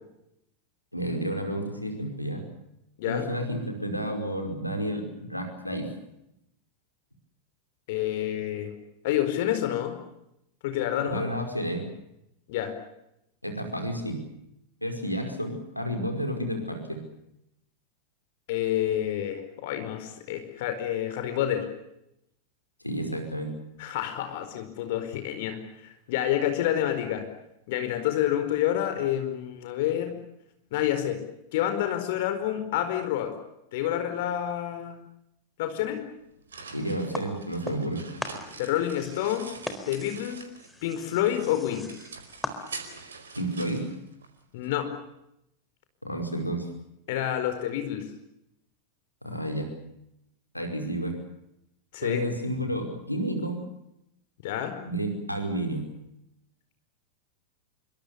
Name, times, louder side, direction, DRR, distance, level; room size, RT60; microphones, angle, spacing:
voice 1, 0.9-2.4 3.1-5.9 11.0-11.8 13.4-14.2 14.8-17.0 22.8-23.6 36.7-38.0 43.3-43.9 46.0-46.7 49.2-49.7 50.5-51.2 52.0-53.6 54.8-55.9, right 1 dB, 90° left, 5 dB, 5.1 m, -31 dB
voice 2, 7.9-8.7 9.0-9.9 10.6-11.2 12.5-12.7 18.5-21.7 23.8-25.6 26.1-27.2 27.7-30.1 30.7-31.2 31.5-33.3 33.7-34.9 35.6-36.0 38.6-39.5 39.9-40.4 40.8-41.9 44.5-44.9 47.1-48.1 51.9-52.2 54.4-54.7, left 11 dB, 50° left, 8 dB, 4.6 m, -28 dB
sound 1, 36.1-40.8 41.1-44.7, right 4 dB, 70° right, 4.7 m, -45 dB
sound 2, 37.1-37.9 38.2-43.1, left 1 dB, 5° left, 4.1 m, -39 dB
27.0 x 25.0 x 6.9 m, 0.82 s
figure-of-eight pair, 90°, 0 cm